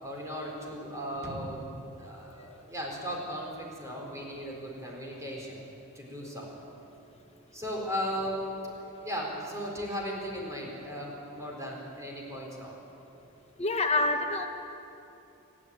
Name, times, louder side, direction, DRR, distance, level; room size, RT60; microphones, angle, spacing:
voice 1, 0.0-1.6 2.0-5.6 5.9-6.5 7.5-12.8, equal, 15° right, -2 dB, 4.3 m, -37 dB
sound 1, 1.2-4.0 4.4-4.5, right 1 dB, 45° right, 1.1 m, -46 dB
voice 2, 13.6-14.5, left 2 dB, 30° left, 4 dB, 1.5 m, -26 dB
26.5 x 11.5 x 8.9 m, 2.8 s
head